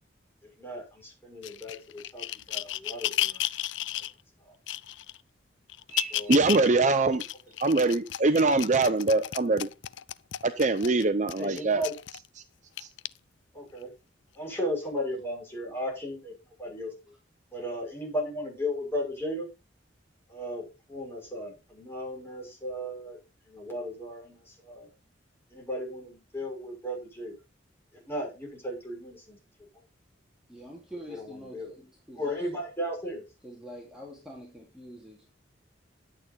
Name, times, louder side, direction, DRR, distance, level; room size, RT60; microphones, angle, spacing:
voice 1, 0.4-3.4 3.9-4.0 4.4-4.5 6.1-6.6 9.0-9.1 11.3-11.9 13.5-13.9 14.3-17.1 17.5-19.5 20.3-23.2 23.5-24.9 25.5-27.3 27.9-29.4 29.7-29.8 31.1-31.7 32.1-33.2, equal, 15° left, 6.3 m, -36 dB
sound 1, 1.4-4.1 4.7-5.2 5.7-6.7 7.1-12.3 12.8-13.1 13.8-13.9, left 13 dB, 75° left, 0.4 m, -33 dB
voice 2, 5.9-7.2 7.6-9.7 10.4-11.8 12.8-12.9, right 3 dB, 40° right, 0.7 m, -23 dB
voice 3, 30.5-32.4 33.4-35.3, equal, 5° right, 2.9 m, -45 dB
11.5 x 8.3 x 4.1 m
head